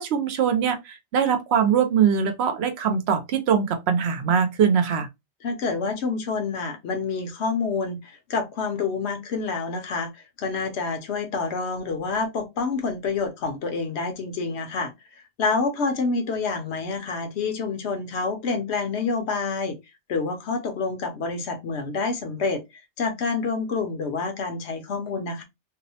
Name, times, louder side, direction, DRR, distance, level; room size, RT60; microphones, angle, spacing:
voice 1, 0.0-5.1, right 7 dB, 75° right, 0.8 m, -22 dB
voice 2, 5.4-19.8 20.1-25.4, left 4 dB, 75° left, 0.9 m, -28 dB
2.6 x 2.0 x 2.7 m
omnidirectional pair, 1.1 m